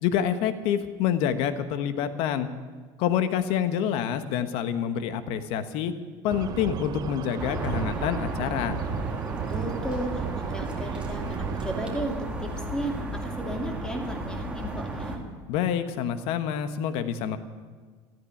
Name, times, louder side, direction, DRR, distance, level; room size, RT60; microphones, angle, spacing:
voice 1, 0.0-2.5 3.0-5.9 6.2-8.8 15.5-17.4, left 9 dB, 65° left, 10 dB, 1.2 m, -27 dB
sound 1, 6.3-12.0, right 9 dB, 40° right, 0.6 m, -34 dB
sound 2, 7.4-15.2, right 1 dB, 10° right, 2.3 m, -34 dB
voice 2, 9.5-15.2, right 1 dB, 5° left, 2 dB, 2.7 m, -34 dB
14.0 x 10.5 x 9.8 m, 1.5 s
cardioid pair, 130°, 10 cm